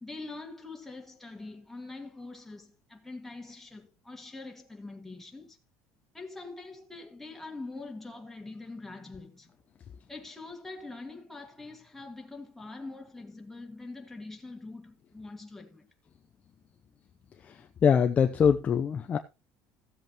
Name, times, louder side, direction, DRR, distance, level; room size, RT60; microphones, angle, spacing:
voice 1, 0.0-5.6 6.1-9.5 10.1-15.9, left 3 dB, 5° left, 2.0 m, -44 dB
voice 2, 17.4-19.2, left 7 dB, 25° left, 0.6 m, -24 dB
15.5 x 7.9 x 3.0 m
cardioid pair, 145°, 5 cm